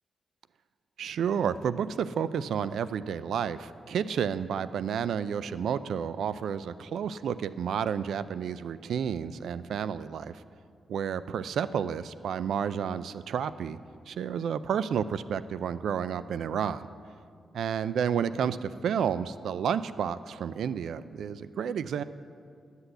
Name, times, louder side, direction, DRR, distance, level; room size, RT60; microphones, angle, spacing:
voice 1, 1.0-10.4 10.9-13.8 14.1-16.9 17.5-22.0, right 7 dB, 85° right, 14 dB, 0.4 m, -31 dB
11.5 x 8.1 x 7.9 m, 2.3 s
wide cardioid pair, 130°, 0 cm